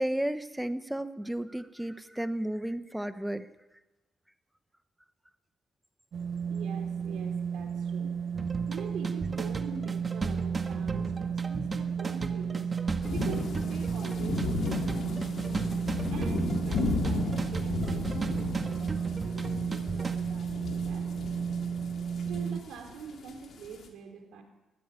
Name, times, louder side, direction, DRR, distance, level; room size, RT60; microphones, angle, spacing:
voice 1, 0.0-3.5, right 1 dB, 5° right, 11 dB, 1.2 m, -33 dB
sound 1, 6.1-22.6, right 7 dB, 60° right, 0.9 m, -33 dB
voice 2, 6.5-8.2 8.7-12.7 13.1-15.3 16.1-21.1 22.2-24.4, right 6 dB, 80° right, 5 dB, 4.1 m, -44 dB
sound 2, 8.3-20.2, right 3 dB, 30° right, 1.7 m, -37 dB
sound 3, 13.0-23.9, left 4 dB, 60° left, 3.5 m, -35 dB
20.5 x 13.5 x 9.8 m, 1.1 s
cardioid pair, 90°, 0 cm